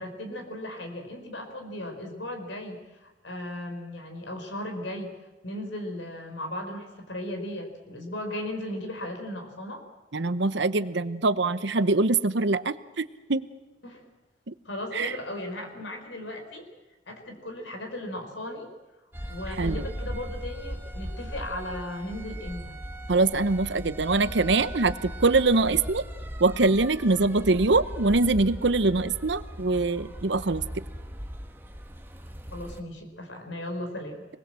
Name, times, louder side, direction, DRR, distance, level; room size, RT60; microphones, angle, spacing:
voice 1, 0.0-5.1 5.4-9.8 13.8-14.0 14.6-16.7 17.1-18.7 19.3-22.8 32.5-34.3, left 1 dB, 75° left, 4 dB, 4.4 m, -36 dB
voice 2, 10.1-13.5 14.5-14.6 14.9-15.2 19.6-19.8 23.1-26.0 26.4-30.8, right 3 dB, 65° right, 13 dB, 0.9 m, -24 dB
sound 1, 19.1-32.8, equal, 10° right, 1.4 m, -38 dB
26.5 x 20.5 x 7.6 m, 1.2 s
head